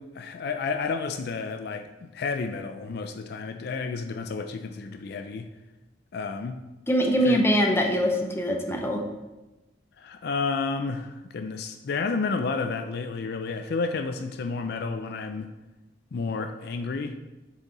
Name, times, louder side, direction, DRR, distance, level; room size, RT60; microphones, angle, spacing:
voice 1, 0.0-5.5 6.1-6.6 7.2-7.4 10.0-15.5 16.1-17.1, left 4 dB, 60° left, 6 dB, 0.4 m, -31 dB
voice 2, 6.9-9.0, equal, 15° left, 2 dB, 0.7 m, -23 dB
6.9 x 4.5 x 3.9 m, 1.1 s
head